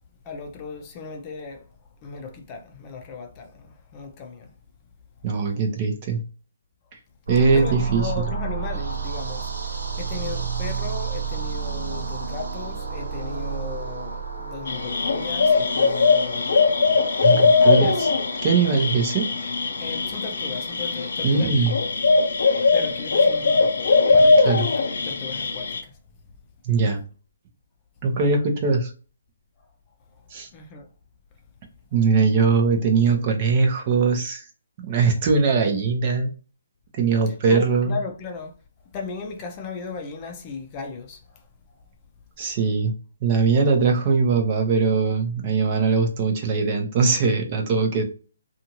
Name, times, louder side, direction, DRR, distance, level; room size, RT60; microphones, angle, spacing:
voice 1, 0.2-1.7 2.0-4.5 7.5-16.5 17.0-17.1 17.6-18.0 19.8-21.7 22.7-26.0 30.5-30.9 37.3-38.5 38.9-41.4, left 4 dB, 25° left, 0.6 m, -36 dB
voice 2, 5.2-6.2 7.3-8.2 17.2-18.1 18.4-19.3 21.2-21.7 24.4-24.6 26.6-27.0 28.0-28.9 30.3-30.5 31.9-34.4 34.8-36.3 36.9-37.9 42.4-42.9 43.2-48.0, right 4 dB, 35° right, 0.7 m, -21 dB
sound 1, 7.3-21.1, right 6 dB, 85° right, 0.6 m, -32 dB
sound 2, 14.7-25.8, left 4 dB, 70° left, 0.5 m, -20 dB
2.6 x 2.5 x 2.9 m
hypercardioid pair, 150°, 0 cm